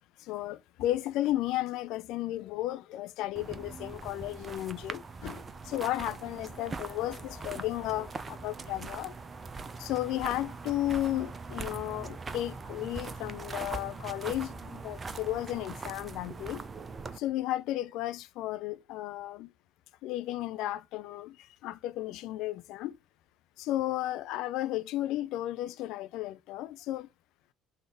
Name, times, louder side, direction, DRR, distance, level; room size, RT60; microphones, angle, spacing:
voice 1, 0.2-9.1 9.8-16.6 17.2-19.5 20.0-21.4 21.6-23.0 23.6-27.1, left 14 dB, 60° left, 0.5 m, -34 dB
sound 1, 3.4-17.2, right 4 dB, 30° right, 0.7 m, -41 dB
5.6 x 3.5 x 4.9 m
figure-of-eight pair, 55°, 0 cm